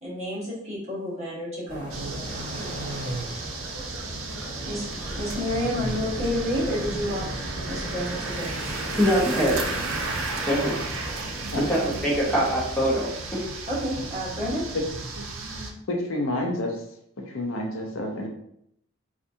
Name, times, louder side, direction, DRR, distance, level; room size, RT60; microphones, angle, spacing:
voice 1, 0.0-2.0 4.6-7.3 7.7-8.5 13.7-14.7, left 1 dB, 35° right, -7 dB, 1.3 m, -30 dB
sound 1, 1.7-12.2, equal, 65° left, 1.2 m, -37 dB
sound 2, 1.9-15.7, right 3 dB, 85° right, 0.6 m, -34 dB
voice 2, 8.9-9.6 10.4-10.8 11.5-13.4, equal, 5° left, -6 dB, 1.0 m, -23 dB
voice 3, 15.9-16.8 17.3-18.3, left 1 dB, 80° left, 2 dB, 0.6 m, -28 dB
4.2 x 2.4 x 2.7 m, 0.72 s
head